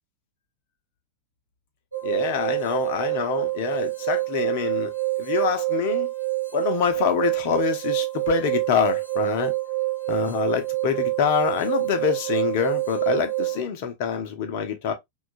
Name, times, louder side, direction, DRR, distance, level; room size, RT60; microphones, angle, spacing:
sound 1, 1.9-13.6, right 20 dB, 90° left, 0.8 m, -27 dB
voice 1, 2.0-4.9 5.2-6.1 6.5-9.5 10.1-14.9, left 7 dB, 50° left, 0.7 m, -25 dB
2.9 x 2.3 x 2.5 m
figure-of-eight pair, 90°, 0 cm